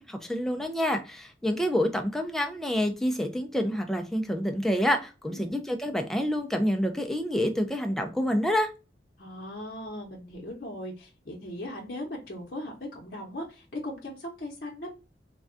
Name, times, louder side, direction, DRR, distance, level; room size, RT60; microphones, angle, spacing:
voice 1, 0.0-8.7, equal, ahead, 4 dB, 0.4 m, -28 dB
voice 2, 9.2-14.9, left 1 dB, 55° left, -2 dB, 0.7 m, -38 dB
3.4 x 2.2 x 2.4 m, 0.31 s
head